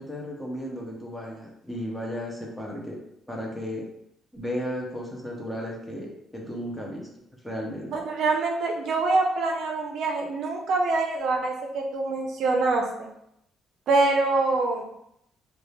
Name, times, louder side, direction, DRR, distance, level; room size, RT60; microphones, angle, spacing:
voice 1, 0.0-3.0 3.3-3.9 4.3-7.1 7.4-8.0, equal, 5° left, -2 dB, 0.5 m, -34 dB
voice 2, 7.9-13.1 13.9-14.9, right 3 dB, 60° right, 2 dB, 0.4 m, -25 dB
2.9 x 2.1 x 2.2 m, 0.77 s
cardioid pair, 155°, 0 cm